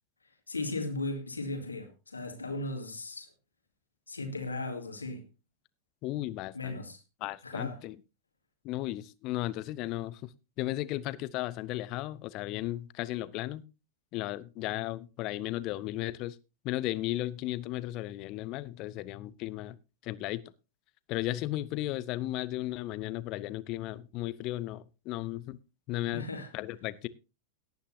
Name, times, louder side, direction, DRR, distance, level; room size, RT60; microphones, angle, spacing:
voice 1, 0.5-3.3 4.1-5.3 6.5-7.0 7.4-7.8 26.0-26.5, left 2 dB, 80° left, 2.2 m, -36 dB
voice 2, 6.0-6.8 7.2-7.9 8.6-10.3 10.6-13.6 14.1-16.4 16.6-19.8 20.0-20.4 21.1-25.6 25.9-26.2 26.5-27.1, left 16 dB, 40° left, 0.7 m, -35 dB
18.0 x 9.3 x 2.7 m
figure-of-eight pair, 90°, 0 cm